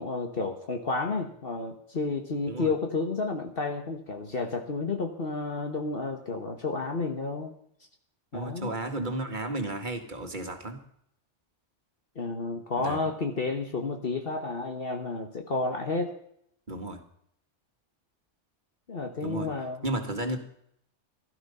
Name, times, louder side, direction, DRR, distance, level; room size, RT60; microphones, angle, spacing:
voice 1, 0.0-7.5 8.3-8.7 12.1-16.1 18.9-19.9, left 3 dB, 50° left, 4 dB, 1.5 m, -31 dB
voice 2, 8.3-10.8 12.8-13.0 16.7-17.0 19.2-19.5 19.8-20.4, right 1 dB, 40° right, 5 dB, 2.1 m, -33 dB
16.0 x 12.5 x 5.5 m, 0.71 s
omnidirectional pair, 1.2 m